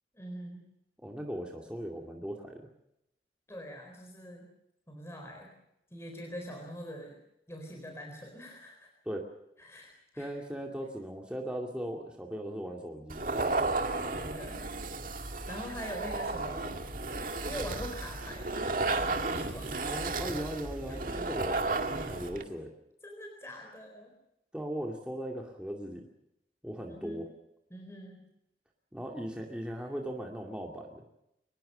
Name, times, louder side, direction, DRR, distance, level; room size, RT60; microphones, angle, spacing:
voice 1, 0.1-0.7 3.5-4.5 4.9-5.6 5.9-7.2 7.5-8.9 9.6-10.3 14.1-14.7 15.5-16.8 17.5-20.1 23.0-24.1 26.9-27.3 27.7-28.3, equal, 15° left, 2 dB, 4.2 m, -44 dB
voice 2, 1.0-2.6 9.1-9.3 10.2-13.7 19.8-22.7 24.5-26.0 26.6-27.3 28.9-31.0, equal, 5° right, 0 dB, 2.4 m, -38 dB
sound 1, 13.1-22.4, right 3 dB, 50° right, 2.1 m, -33 dB
24.0 x 20.5 x 6.7 m, 0.82 s
head